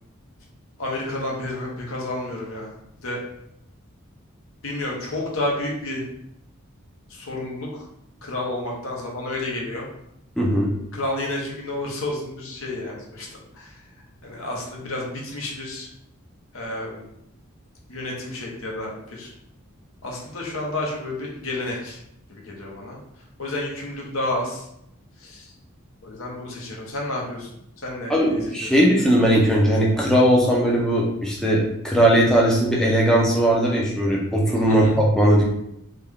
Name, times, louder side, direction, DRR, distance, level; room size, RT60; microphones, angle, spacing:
voice 1, 0.8-2.7 3.0-3.2 4.6-6.0 7.1-7.9 8.2-9.9 10.9-13.8 14.2-15.9 16.5-17.1 17.9-19.3 20.0-22.0 22.3-23.0 23.4-24.7 25.2-25.5 26.0-27.5 27.8-28.7 34.7-34.9, left 1 dB, 75° left, -2 dB, 0.9 m, -30 dB
voice 2, 10.4-10.7 28.1-35.5, equal, 5° left, -3 dB, 0.4 m, -19 dB
3.3 x 2.2 x 3.5 m, 0.77 s
head